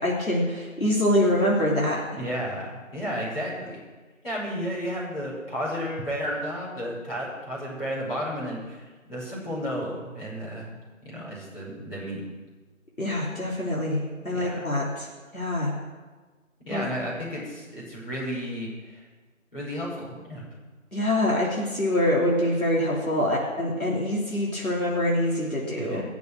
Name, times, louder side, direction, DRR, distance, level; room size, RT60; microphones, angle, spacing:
voice 1, 0.0-2.0 13.0-15.1 15.3-15.7 16.7-16.8 20.9-26.0, left 1 dB, 80° left, -4 dB, 3.3 m, -25 dB
voice 2, 2.2-3.8 4.2-10.7 11.0-12.2 14.3-14.6 16.7-19.1 19.5-20.5 25.8-26.0, equal, 40° left, -7 dB, 5.8 m, -33 dB
20.5 x 7.1 x 6.3 m, 1.3 s
figure-of-eight pair, 180°, 41 cm